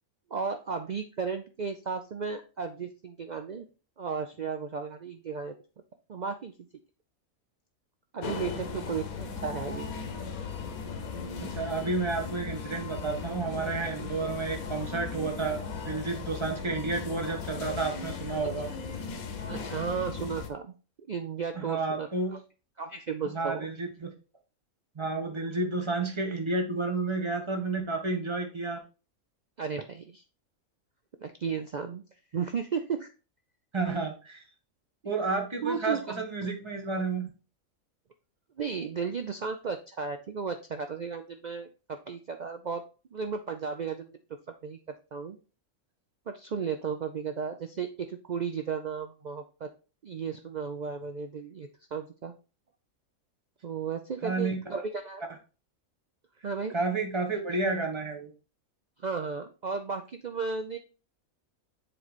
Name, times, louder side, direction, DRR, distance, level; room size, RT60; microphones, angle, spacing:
voice 1, 0.3-3.7 4.0-5.5 6.1-6.5 8.1-10.0 18.7-18.8 19.5-20.7 21.1-22.4 22.8-23.7 29.6-30.2 31.2-32.0 32.3-33.1 35.6-36.1 36.4-36.5 38.6-42.8 43.1-44.2 44.6-44.8 45.1-45.4 46.3-49.7 50.0-52.3 53.6-55.2 56.4-56.7 59.0-60.8, right 6 dB, 80° right, 6 dB, 0.4 m, -34 dB
sound 1, 8.2-20.5, left 5 dB, 85° left, 1.4 m, -37 dB
voice 2, 11.4-18.7 21.6-22.4 23.3-24.1 24.9-28.8 33.7-34.4 35.0-37.3 54.2-54.8 56.7-58.3, right 3 dB, 20° right, 3 dB, 1.1 m, -31 dB
7.6 x 3.3 x 4.0 m, 0.34 s
omnidirectional pair, 1.4 m